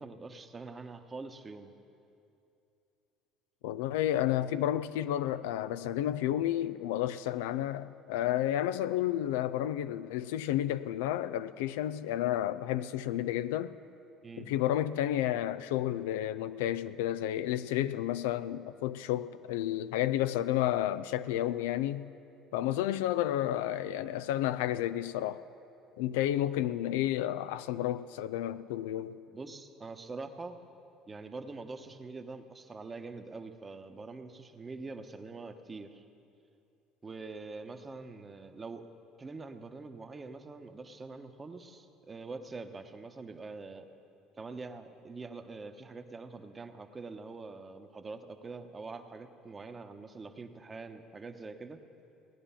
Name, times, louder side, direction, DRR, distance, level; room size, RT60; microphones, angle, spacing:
voice 1, 0.0-1.7 14.2-14.5 29.3-30.6 31.1-36.0 37.0-38.9 39.2-43.9 44.4-51.8, right 3 dB, 25° right, 1.0 m, -44 dB
voice 2, 3.6-13.8 14.4-22.1 22.5-25.4 26.0-29.2, left 12 dB, 85° left, 0.3 m, -31 dB
17.0 x 10.0 x 5.7 m
supercardioid pair, 80°, 0 cm